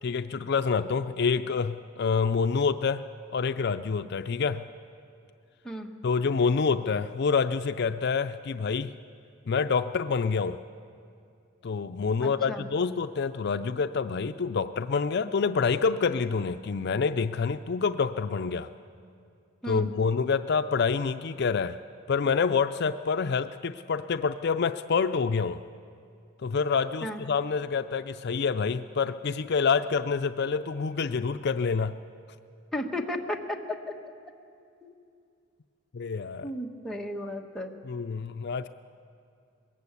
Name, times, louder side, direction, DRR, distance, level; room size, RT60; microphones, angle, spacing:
voice 1, 0.0-3.0 3.3-4.6 6.0-8.9 9.5-10.6 11.6-18.7 19.7-21.8 22.1-25.6 26.4-31.9 35.9-36.5 37.9-38.7, left 5 dB, 55° left, 9 dB, 0.5 m, -27 dB
voice 2, 12.2-12.7 19.6-19.9 27.0-27.2 32.7-33.6 34.8-34.9 36.4-37.7, left 1 dB, ahead, 0 dB, 1.5 m, -34 dB
22.0 x 18.5 x 8.3 m, 2.4 s
head